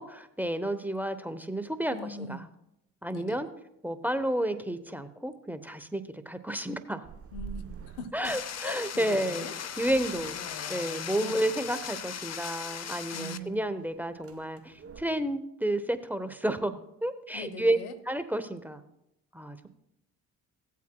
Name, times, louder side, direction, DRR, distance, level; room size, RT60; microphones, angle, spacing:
voice 1, 0.0-2.4 3.0-3.5 3.8-7.0 8.1-9.5 9.8-10.4 10.7-17.8 18.1-18.8 19.3-19.7, right 1 dB, 5° right, 10 dB, 0.9 m, -31 dB
voice 2, 1.9-2.5 3.1-3.5 7.3-8.3 8.6-9.5 10.1-11.5 13.1-13.8 17.3-17.9, left 3 dB, 80° left, 11 dB, 0.9 m, -42 dB
sound 1, 7.0-15.0, right 6 dB, 35° right, 1.1 m, -49 dB
sound 2, 8.2-13.4, left 8 dB, 40° left, 0.8 m, -38 dB
16.5 x 8.3 x 2.3 m, 0.81 s
hypercardioid pair, 50°, 40 cm